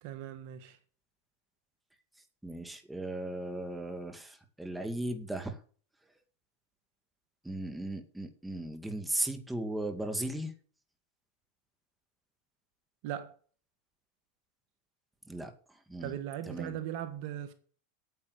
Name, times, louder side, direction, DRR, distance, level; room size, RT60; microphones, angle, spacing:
voice 1, 0.0-0.8 13.0-13.3 16.0-17.5, right 11 dB, 60° right, 1.6 m, -38 dB
voice 2, 2.4-5.6 7.4-10.5 15.3-15.5 15.9-16.1 16.5-16.8, right 1 dB, 5° right, 2.4 m, -36 dB
9.7 x 8.5 x 6.8 m
hypercardioid pair, 100°, 0 cm